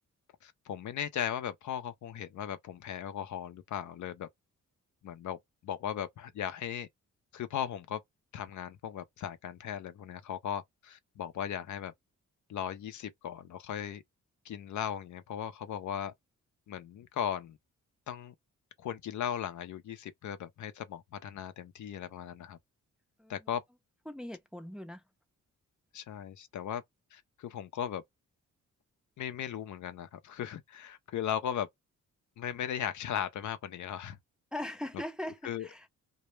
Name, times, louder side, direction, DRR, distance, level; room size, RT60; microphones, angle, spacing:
voice 1, 0.4-4.3 5.0-6.9 7.3-8.0 8.3-11.9 12.5-14.0 14.4-16.1 16.7-17.6 18.1-18.3 18.8-22.6 23.3-23.6 25.9-26.8 27.1-28.0 29.2-31.7 32.4-34.2 35.4-35.7, left 9 dB, 65° left, 0.5 m, -37 dB
voice 2, 24.1-25.0 34.5-35.9, left 1 dB, ahead, 0.5 m, -40 dB
2.1 x 2.0 x 3.0 m
cardioid pair, 85°, 31 cm